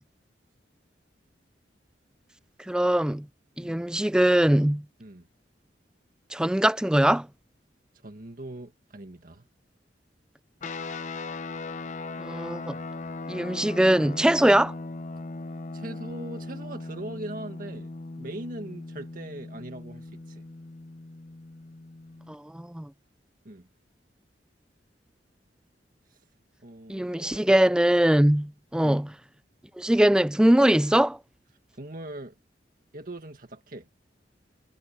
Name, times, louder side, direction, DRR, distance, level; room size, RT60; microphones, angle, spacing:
voice 1, 2.7-3.3 3.6-4.8 6.3-7.3 12.2-12.8 13.3-14.7 22.3-22.9 26.9-29.1 29.8-31.2, right 1 dB, 5° right, 0.3 m, -22 dB
voice 2, 8.0-9.5 15.7-20.4 23.5-23.7 26.1-26.2 26.6-27.6 28.8-29.0 31.8-32.4 32.9-33.9, right 1 dB, 50° right, 1.8 m, -40 dB
sound 1, 10.6-22.3, left 3 dB, 45° left, 0.8 m, -38 dB
head